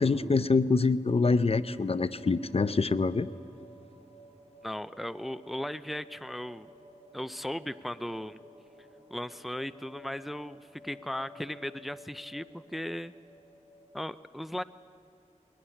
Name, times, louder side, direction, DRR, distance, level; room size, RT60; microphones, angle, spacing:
voice 1, 0.0-3.3, left 4 dB, 50° left, 13 dB, 0.6 m, -25 dB
sound 1, 1.2-14.1, equal, 55° right, 7.1 m, -55 dB
voice 2, 4.6-6.7 7.1-8.4 9.1-13.1 13.9-14.6, left 1 dB, ahead, 12 dB, 0.5 m, -37 dB
21.5 x 19.0 x 9.9 m, 2.4 s
wide cardioid pair, 65°, 13 cm